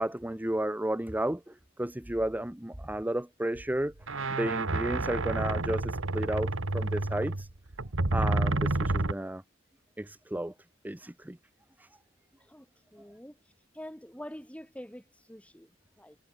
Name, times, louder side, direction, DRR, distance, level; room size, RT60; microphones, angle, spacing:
voice 1, 0.0-3.9 4.3-7.5 8.1-9.4 10.0-10.5 10.8-11.4 11.8-11.9, right 1 dB, 10° right, 0.7 m, -33 dB
sound 1, 3.6-3.7 4.0-9.1, right 2 dB, 80° right, 1.7 m, -29 dB
voice 2, 12.4-13.4 13.7-16.2, equal, 5° left, 6.2 m, -46 dB
head